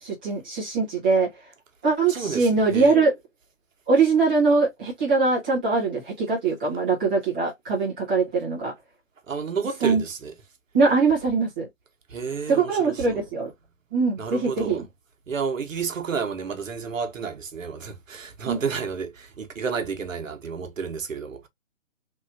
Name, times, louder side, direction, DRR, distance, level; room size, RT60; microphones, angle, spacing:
voice 1, 0.0-1.3 1.8-3.1 3.9-8.7 9.8-10.0 10.7-11.7 12.5-13.5 13.9-14.8 18.5-18.6, right 4 dB, 10° right, 0.5 m, -22 dB
voice 2, 2.1-2.9 9.3-10.3 12.1-13.2 14.2-14.8 15.3-21.5, right 5 dB, 75° right, 1.0 m, -31 dB
3.3 x 2.7 x 2.5 m
hypercardioid pair, 150°, 39 cm